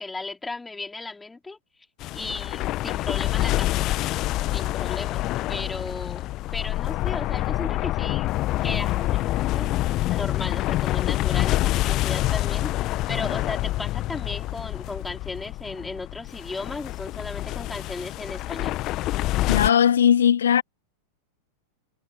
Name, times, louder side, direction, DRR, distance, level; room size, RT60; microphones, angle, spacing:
voice 1, 0.0-1.6 2.1-3.9 4.5-5.2 5.5-8.3 8.6-9.7 10.0-18.8, left 3 dB, 10° left, 4.4 m, -35 dB
sound 1, 2.0-19.7, left 16 dB, 35° left, 1.2 m, -26 dB
voice 2, 19.5-20.6, left 9 dB, 65° left, 2.4 m, -18 dB
figure-of-eight pair, 90°, 0 cm